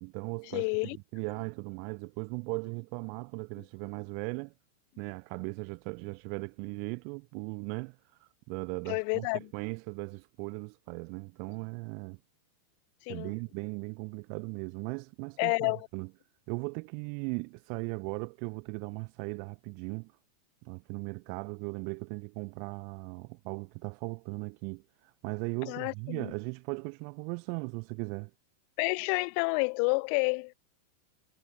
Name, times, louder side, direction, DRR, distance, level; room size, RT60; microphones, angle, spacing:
voice 1, 0.0-4.5 5.0-12.2 13.1-16.1 16.5-20.1 20.6-28.3, right 40 dB or more, 45° right, 1.1 m, -38 dB
voice 2, 0.5-1.0 8.9-9.5 13.1-13.3 15.4-15.9 25.7-26.3 28.8-30.5, left 40 dB or more, 45° left, 0.7 m, -29 dB
figure-of-eight pair, 90°, 0 cm